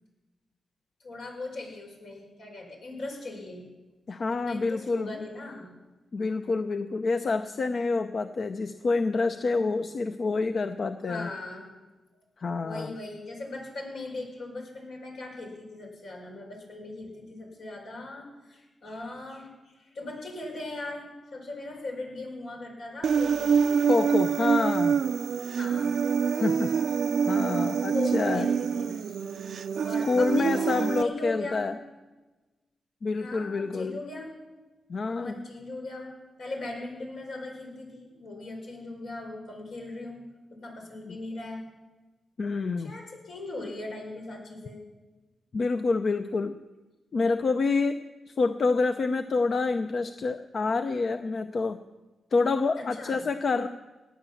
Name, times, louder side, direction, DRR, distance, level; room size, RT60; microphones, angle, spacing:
voice 1, 1.0-3.7 4.3-5.7 11.1-11.6 12.6-23.6 25.4-25.9 27.9-29.1 29.8-31.6 33.2-34.3 35.1-36.1 36.4-40.2 40.5-41.6 42.8-44.8 52.8-53.2, left 2 dB, 80° left, -1 dB, 4.9 m, -39 dB
voice 2, 4.1-5.1 6.1-11.3 12.4-12.9 23.9-25.0 26.4-26.7 27.3-28.5 30.0-31.8 33.0-34.0 34.9-35.4 41.1-41.2 42.4-42.9 45.5-46.6 47.1-48.0 48.3-51.8 52.3-53.7, left 3 dB, 55° left, 8 dB, 0.6 m, -27 dB
Human voice, 23.0-31.0, right 6 dB, 75° right, 0.4 m, -26 dB
18.5 x 8.7 x 7.2 m, 1.2 s
cardioid pair, 75°, 0 cm